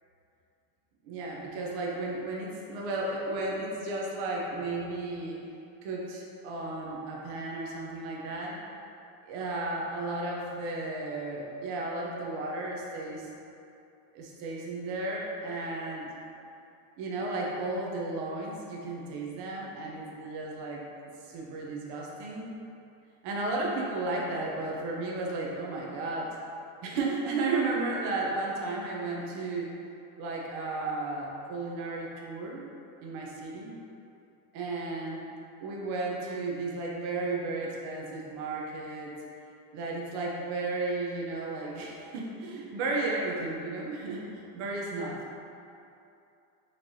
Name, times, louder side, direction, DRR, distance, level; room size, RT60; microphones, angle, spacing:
voice 1, 1.0-5.4 5.8-8.6 9.3-13.3 14.1-16.1 17.0-20.9 21.2-22.5 23.2-26.4 26.8-29.7 30.2-32.6 33.0-33.8 34.5-35.2 35.6-39.1 39.7-45.2, right 2 dB, 55° right, -3 dB, 0.7 m, -34 dB
4.3 x 3.2 x 2.7 m, 2.7 s
supercardioid pair, 140°, 50 cm